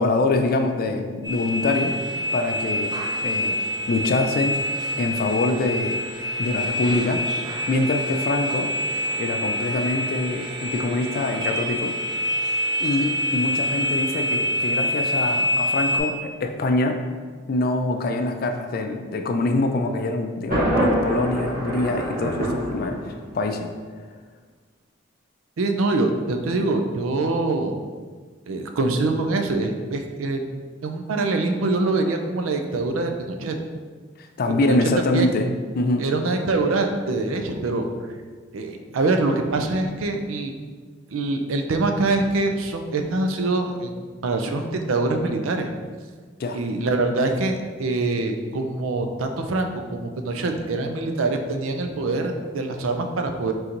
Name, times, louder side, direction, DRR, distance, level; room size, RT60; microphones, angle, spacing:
voice 1, 0.0-2.0 2.3-2.9 3.2-3.6 3.9-4.6 5.0-6.1 6.4-7.3 7.7-8.7 9.1-11.9 12.8-17.0 17.5-23.0 23.3-23.7 34.2-36.1 46.4-46.6, left 2 dB, 45° left, 5 dB, 0.3 m, -24 dB
sound 1, 1.2-16.0, equal, 20° right, 0.5 m, -26 dB
Thunder, 20.5-23.5, right 1 dB, 45° right, 1.2 m, -25 dB
voice 2, 25.6-27.8 28.5-30.4 30.8-33.5 34.4-34.8 35.1-35.3 36.0-37.9 38.5-40.5 41.1-43.9 44.2-45.7 46.5-53.5, right 2 dB, 85° right, 5 dB, 0.5 m, -24 dB
4.3 x 3.8 x 2.5 m, 1.5 s
head